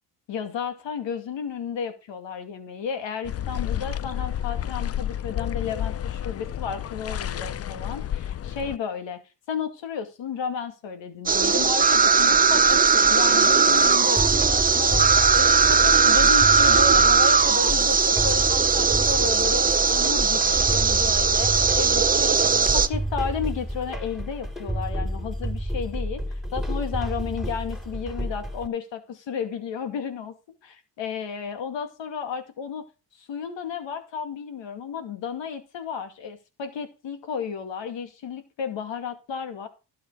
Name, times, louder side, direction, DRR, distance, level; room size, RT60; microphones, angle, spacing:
voice 1, 0.3-9.2 9.5-22.4 22.7-30.3 30.6-32.8 33.2-39.7, left 6 dB, 65° left, 8 dB, 2.4 m, -33 dB
sound 1, 3.2-8.8, left 10 dB, 30° left, 0.5 m, -30 dB
sound 2, 11.3-22.9, right 5 dB, 20° right, 0.8 m, -19 dB
sound 3, 14.2-28.7, equal, ahead, 3.7 m, -30 dB
12.0 x 7.4 x 5.0 m, 0.31 s
supercardioid pair, 65°, 48 cm